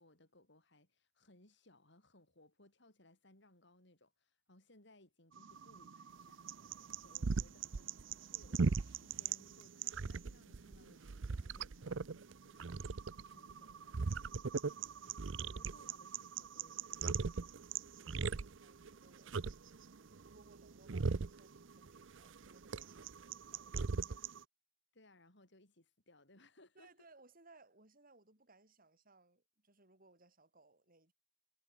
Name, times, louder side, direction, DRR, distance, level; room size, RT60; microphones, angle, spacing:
voice 1, 0.0-6.5 7.0-7.9 8.2-14.3 15.0-17.1 24.0-24.4 24.9-26.9, left 1 dB, 65° left, 7.7 m, -66 dB
sound 1, 5.4-24.4, right 4 dB, 75° right, 0.7 m, -40 dB
voice 2, 17.8-19.4 20.0-24.3 26.7-31.1, right 2 dB, 50° right, 7.5 m, -66 dB
head